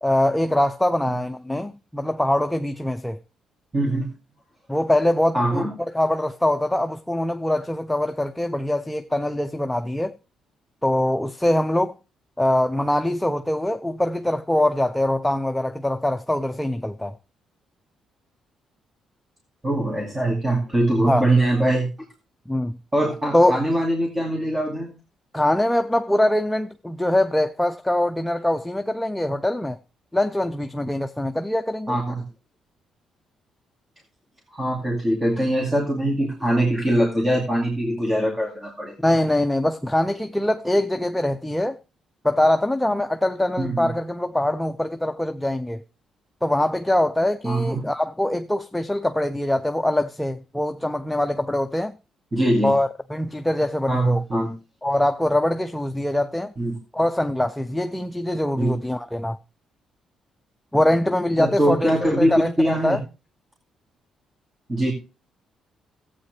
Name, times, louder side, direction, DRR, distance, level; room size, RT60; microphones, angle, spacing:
voice 1, 0.0-3.2 4.7-5.7 5.9-10.2 10.8-11.9 12.4-17.2 21.1-21.3 22.5-22.8 23.3-23.6 25.3-29.8 30.1-32.0 39.0-41.8 42.2-45.8 46.4-51.9 52.6-54.2 54.8-56.5 56.9-59.4 60.7-63.0, left 1 dB, 5° left, 0.5 m, -23 dB
voice 2, 3.7-4.1 5.3-5.7 19.6-21.9 22.9-24.9 31.9-32.1 34.5-38.9 43.6-43.9 47.4-47.8 52.3-52.7 53.9-54.5 56.6-56.8 58.6-58.8 61.4-63.0 64.7-64.9, right 1 dB, 20° right, 2.4 m, -22 dB
14.0 x 8.4 x 3.3 m
cardioid pair, 90°, 0 cm